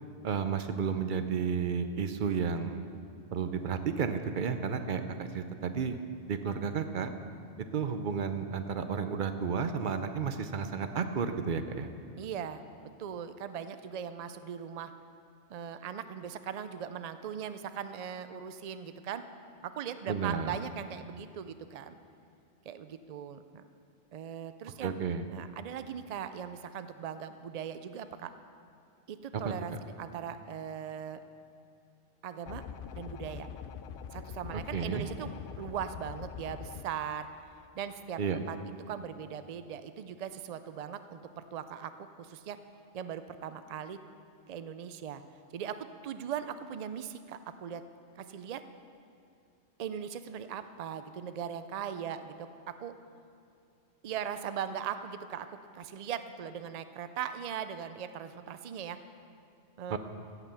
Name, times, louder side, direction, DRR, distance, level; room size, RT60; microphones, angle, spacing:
voice 1, 0.2-2.8 3.3-6.0 6.3-7.1 7.7-11.9 20.1-20.5 24.8-25.2 29.4-29.5 34.7-35.1 38.2-38.4 59.9-60.0, right 6 dB, 50° right, 9 dB, 0.7 m, -32 dB
voice 2, 12.2-12.6 13.0-14.9 15.5-19.2 19.6-22.0 22.7-23.7 24.1-25.0 25.3-28.3 29.1-31.2 32.2-32.6 32.9-33.5 34.1-35.3 35.6-37.3 37.7-38.2 38.5-38.6 38.9-42.6 42.9-44.0 44.5-45.2 45.5-47.8 48.2-48.6 49.8-52.9 54.0-59.0 59.8-60.0, right 8 dB, 80° right, 11 dB, 0.3 m, -39 dB
sound 1, 32.5-36.8, left 7 dB, 60° left, 0.6 m, -43 dB
16.0 x 6.0 x 6.8 m, 2.4 s
omnidirectional pair, 1.2 m